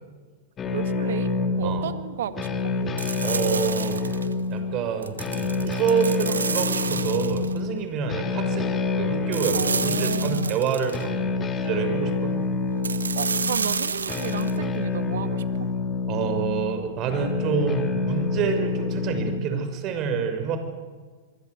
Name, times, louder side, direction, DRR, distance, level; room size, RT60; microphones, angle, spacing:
sound 1, 0.6-19.4, left 3 dB, 25° left, 3.1 m, -28 dB
voice 1, 0.7-2.5 9.5-10.6 13.2-15.4, right 10 dB, 70° right, 11 dB, 1.9 m, -33 dB
voice 2, 1.6-1.9 3.2-4.0 4.5-8.7 9.0-11.3 11.6-12.4 16.1-20.6, right 6 dB, 40° right, 8 dB, 6.1 m, -27 dB
sound 2, 3.0-4.3 5.0-7.6 9.3-11.0 12.8-14.5, right 5 dB, 85° right, 1.5 m, -30 dB
25.5 x 24.0 x 8.1 m, 1.5 s
hypercardioid pair, 105°, 0 cm